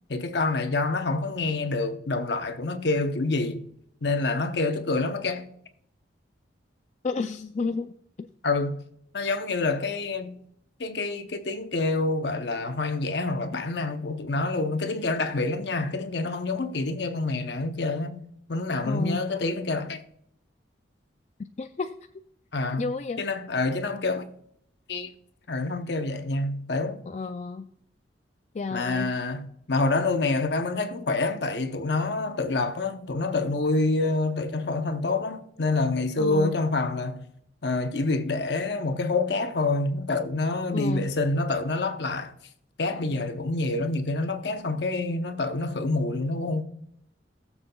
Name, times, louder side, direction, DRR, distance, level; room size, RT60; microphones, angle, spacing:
voice 1, 0.1-3.7 4.0-5.5 8.4-8.8 9.1-10.4 10.8-18.2 18.5-20.0 22.5-22.9 23.2-24.3 24.9-25.1 25.5-27.0 28.7-37.2 37.6-42.3 42.8-46.6, left 3 dB, 65° left, 0.8 m, -27 dB
voice 2, 7.0-8.3 18.9-19.2 21.6-21.9 22.8-23.2 27.1-27.7 28.5-29.1 36.2-36.5 40.7-41.1, left 4 dB, 40° left, 0.3 m, -31 dB
20.0 x 7.1 x 2.3 m
head